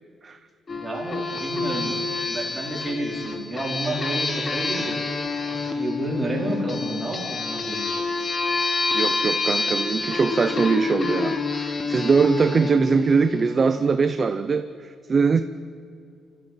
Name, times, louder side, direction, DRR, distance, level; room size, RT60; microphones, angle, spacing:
sound 1, 0.7-13.9, left 3 dB, 25° left, 1.4 m, -28 dB
voice 1, 0.7-1.9 2.3-7.9, right 1 dB, 10° right, -3 dB, 4.6 m, -30 dB
voice 2, 8.9-15.4, right 5 dB, 25° right, 10 dB, 0.6 m, -22 dB
29.5 x 14.0 x 9.2 m, 2.4 s
cardioid pair, 180°, 0 cm